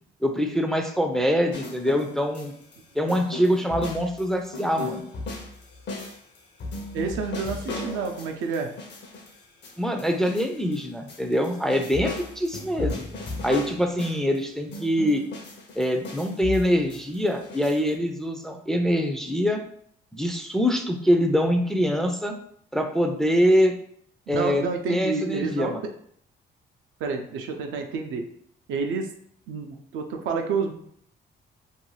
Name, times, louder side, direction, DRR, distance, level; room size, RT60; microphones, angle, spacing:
voice 1, 0.2-2.5 3.0-5.0 9.8-13.1 13.4-15.2 15.8-19.6 20.1-22.3 22.7-23.7 24.3-24.6 24.9-25.8, equal, ahead, 4 dB, 0.3 m, -24 dB
sound 1, 1.5-2.8 3.1-10.8 11.1-14.4 14.7-17.9, left 3 dB, 60° left, 0.7 m, -36 dB
voice 2, 6.9-8.7 24.3-25.7 27.0-28.3 28.7-29.1 29.5-30.7, right 5 dB, 85° right, 4 dB, 0.5 m, -29 dB
2.6 x 2.3 x 3.1 m, 0.66 s
cardioid pair, 90°, 20 cm